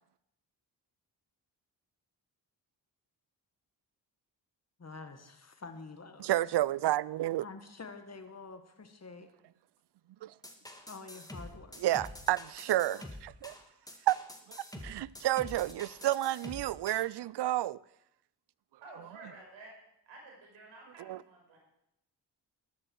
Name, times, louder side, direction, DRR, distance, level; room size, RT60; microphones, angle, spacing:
voice 1, 4.8-6.4 7.4-9.3 10.9-11.7, left 4 dB, 35° left, 1.8 m, -47 dB
voice 2, 6.2-7.4 10.2-10.3 11.8-13.5 14.1-14.2 14.5-17.8 21.1-21.2, right 14 dB, 65° right, 0.5 m, -30 dB
sound 1, 10.4-17.1, left 1 dB, 10° left, 1.9 m, -47 dB
voice 3, 18.8-19.7 20.1-21.6, right 2 dB, 90° right, 5.2 m, -51 dB
13.0 x 12.0 x 4.7 m
cardioid pair, 60°, 44 cm